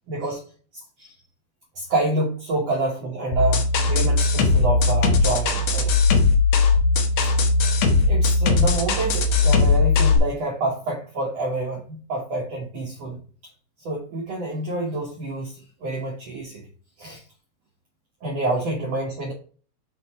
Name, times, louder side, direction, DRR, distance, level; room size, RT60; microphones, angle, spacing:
voice 1, 0.1-0.4 0.7-1.1 1.7-5.9 7.2-7.3 8.1-13.2 13.8-16.6 17.0-17.2 18.2-19.3, right 2 dB, 65° right, -3 dB, 1.6 m, -28 dB
sound 1, 3.3-10.2, left 3 dB, 80° left, 1.5 m, -19 dB
6.4 x 4.0 x 4.2 m, 0.40 s
omnidirectional pair, 4.6 m